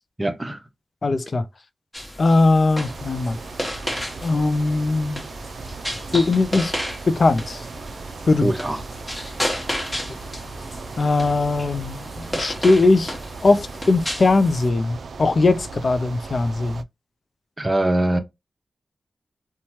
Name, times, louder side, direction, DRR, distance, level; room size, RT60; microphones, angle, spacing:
voice 1, 0.2-0.6 8.4-8.8 17.6-18.2, right 1 dB, 25° right, 0.7 m, -22 dB
voice 2, 1.0-1.5 2.2-3.4 4.2-5.2 6.1-6.7 7.1-7.6 8.3-8.5 11.0-16.8, left 3 dB, 60° left, 0.4 m, -20 dB
sound 1, 1.9-14.7, equal, 20° left, 1.1 m, -33 dB
sound 2, 2.8-16.8, right 4 dB, 80° right, 0.3 m, -37 dB
2.8 x 2.2 x 3.0 m
cardioid pair, 55°, 0 cm